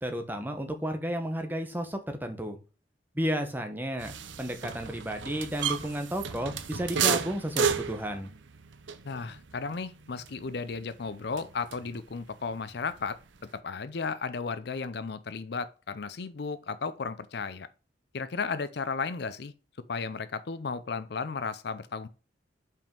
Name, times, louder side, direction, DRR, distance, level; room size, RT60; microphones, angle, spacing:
voice 1, 0.0-2.6 3.1-8.3, equal, 10° right, 1.0 m, -32 dB
sound 1, 4.0-12.1 12.4-13.6, right 6 dB, 85° right, 0.7 m, -33 dB
voice 2, 9.0-13.2 13.6-17.7 18.1-19.5 19.9-22.1, left 5 dB, 60° left, 0.5 m, -34 dB
5.6 x 5.2 x 5.3 m
head